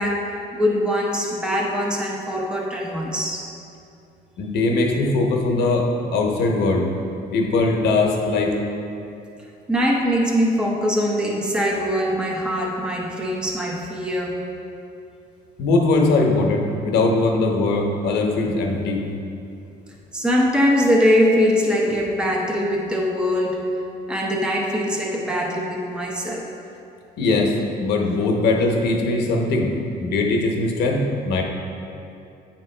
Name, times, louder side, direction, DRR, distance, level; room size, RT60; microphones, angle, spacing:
voice 1, 0.0-3.4 9.7-14.4 20.1-23.7 24.1-26.5, equal, 5° right, -2 dB, 0.7 m, -22 dB
voice 2, 4.4-6.9 7.3-8.6 15.6-19.0 27.2-31.4, left 2 dB, 75° left, 1 dB, 0.9 m, -20 dB
9.0 x 3.0 x 4.3 m, 2.7 s
cardioid pair, 110°, 17 cm